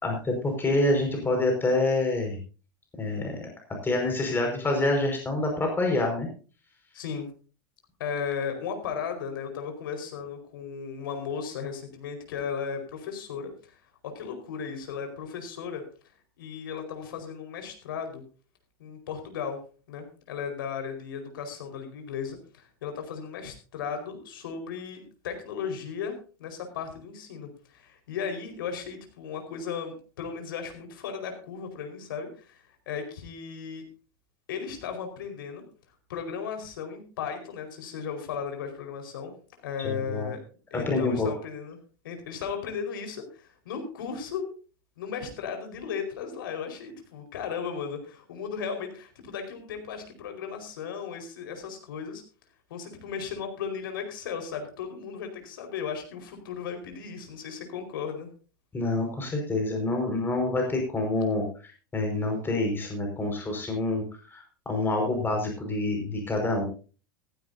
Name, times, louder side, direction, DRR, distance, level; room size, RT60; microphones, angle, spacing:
voice 1, 0.0-2.4 3.0-6.3 39.8-40.3 40.7-41.3 58.7-64.0 64.3-66.7, left 2 dB, 20° left, 2 dB, 5.3 m, -27 dB
voice 2, 6.9-7.3 8.0-13.7 14.0-15.8 16.4-18.2 18.8-19.6 19.9-33.8 34.5-35.6 36.1-39.3 39.6-40.4 40.7-41.8 42.0-44.5 45.0-52.2 52.7-58.3, left 6 dB, 75° left, 5 dB, 4.7 m, -36 dB
15.5 x 15.5 x 2.7 m, 0.36 s
hypercardioid pair, 95°, 12 cm